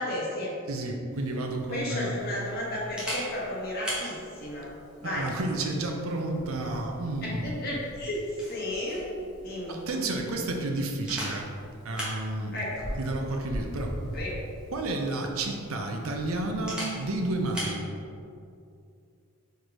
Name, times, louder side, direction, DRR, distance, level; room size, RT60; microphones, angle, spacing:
voice 1, 0.0-0.6 1.7-5.3 7.2-8.2 8.5-9.1 9.4-9.8 12.5-13.0 14.1-14.4, left 1 dB, 45° left, -5 dB, 1.4 m, -33 dB
voice 2, 0.7-2.2 5.0-7.6 9.7-11.5 11.8-12.6 13.0-13.9 14.7-17.8, right 2 dB, 75° right, 2 dB, 0.7 m, -31 dB
Camera, 1.1-17.8, equal, 5° right, 1.4 m, -41 dB
4.7 x 4.6 x 4.9 m, 2.5 s
head